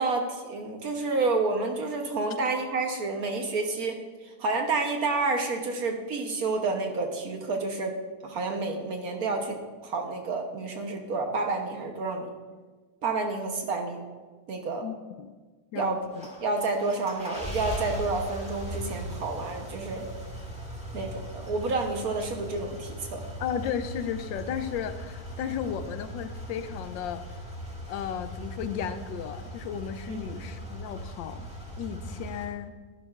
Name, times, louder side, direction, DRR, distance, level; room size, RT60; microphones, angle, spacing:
voice 1, 0.0-8.0 8.2-12.3 13.0-14.0 14.5-14.8 15.7-16.0 16.4-20.1 20.9-23.2 30.1-30.2, right 3 dB, 60° right, 4 dB, 1.2 m, -29 dB
voice 2, 14.8-15.3 15.7-16.3 23.4-27.2 27.9-31.5 31.8-32.8, left 8 dB, 80° left, 10 dB, 1.3 m, -34 dB
sound 1, 16.0-32.5, equal, 5° right, 1.5 m, -39 dB
11.5 x 11.0 x 2.4 m, 1.4 s
omnidirectional pair, 2.1 m